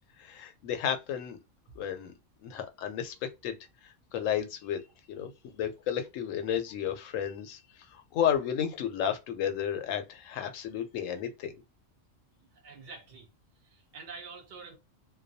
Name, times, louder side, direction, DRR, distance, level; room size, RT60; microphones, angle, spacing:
voice 1, 0.2-1.4 1.8-2.1 2.4-4.8 5.1-11.5, left 9 dB, 90° left, 1.0 m, -33 dB
voice 2, 12.5-13.3 13.6-14.8, right 4 dB, 60° right, 0.5 m, -47 dB
2.3 x 2.2 x 2.6 m
omnidirectional pair, 1.3 m